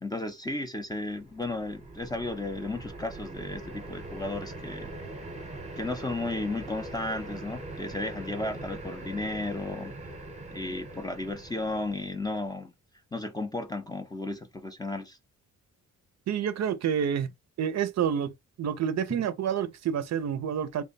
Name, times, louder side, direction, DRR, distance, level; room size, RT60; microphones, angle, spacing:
voice 1, 0.0-4.9 5.8-9.9 10.5-12.7 13.1-15.2, left 2 dB, 10° left, 0.5 m, -34 dB
sound 1, 1.1-12.5, right 2 dB, 20° right, 0.8 m, -42 dB
voice 2, 16.3-17.3 17.6-18.3 18.6-20.8, right 8 dB, 55° right, 0.5 m, -28 dB
3.5 x 2.2 x 3.9 m
wide cardioid pair, 155°, 32 cm